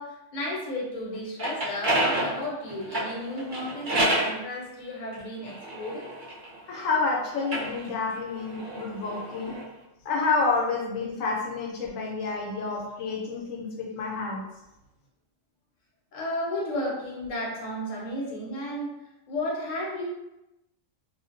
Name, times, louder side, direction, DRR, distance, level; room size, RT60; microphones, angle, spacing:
voice 1, 0.0-6.1 7.4-7.5 16.1-20.0, left 1 dB, 45° left, -4 dB, 0.7 m, -33 dB
sound 1, 1.1-4.4 5.1-6.8 7.3-9.7, right 1 dB, 50° right, 0.6 m, -29 dB
voice 2, 6.7-9.5 10.0-14.4, left 4 dB, 80° left, -1 dB, 1.0 m, -29 dB
2.4 x 2.1 x 2.5 m, 0.94 s
omnidirectional pair, 1.4 m